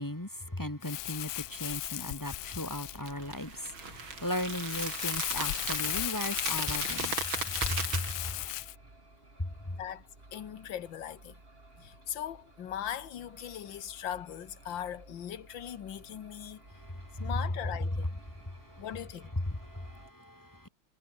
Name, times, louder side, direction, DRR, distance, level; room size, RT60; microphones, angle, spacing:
voice 1, 0.0-8.3 9.4-9.8 16.7-17.3 18.3-18.9 19.4-20.7, left 1 dB, 10° left, 1.6 m, -37 dB
Crumpling crinkling, 0.8-8.8, left 17 dB, 85° left, 1.6 m, -36 dB
sound 1, 0.9-20.1, right 2 dB, 25° right, 4.5 m, -56 dB
sound 2, 3.1-8.5, right 5 dB, 60° right, 4.1 m, -37 dB
voice 2, 10.3-11.4 11.8-16.6 17.2-18.2 18.8-19.3, left 10 dB, 60° left, 1.9 m, -39 dB
omnidirectional pair, 2.4 m